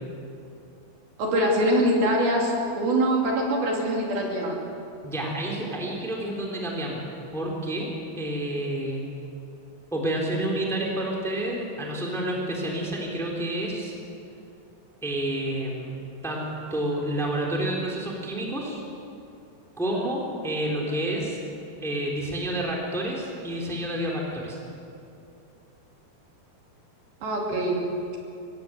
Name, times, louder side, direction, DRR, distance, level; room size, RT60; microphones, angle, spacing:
voice 1, 1.2-4.6 20.9-21.0 27.2-27.8, right 1 dB, 60° right, -1 dB, 4.6 m, -23 dB
voice 2, 5.0-7.0 7.3-7.9 8.2-9.0 9.9-13.9 15.0-15.9 16.2-18.8 19.8-21.4 21.8-24.6, right 1 dB, ahead, -2 dB, 3.2 m, -29 dB
24.5 x 17.5 x 8.0 m, 2.5 s
omnidirectional pair, 5.1 m